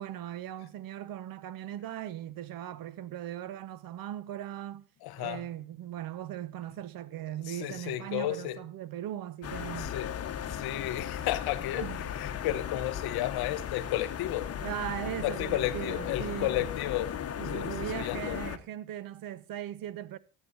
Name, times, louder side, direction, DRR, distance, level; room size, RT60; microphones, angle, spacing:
voice 1, 0.0-4.9 5.2-9.9 11.7-12.0 14.6-16.7 17.4-20.2, right 12 dB, 55° right, 1.2 m, -39 dB
voice 2, 5.0-5.5 7.5-8.6 9.8-14.5 15.2-17.1 17.4-18.4, left 14 dB, 60° left, 1.3 m, -33 dB
sound 1, 9.4-18.6, left 9 dB, 35° left, 1.2 m, -36 dB
18.0 x 8.7 x 2.7 m
supercardioid pair, 80°, 41 cm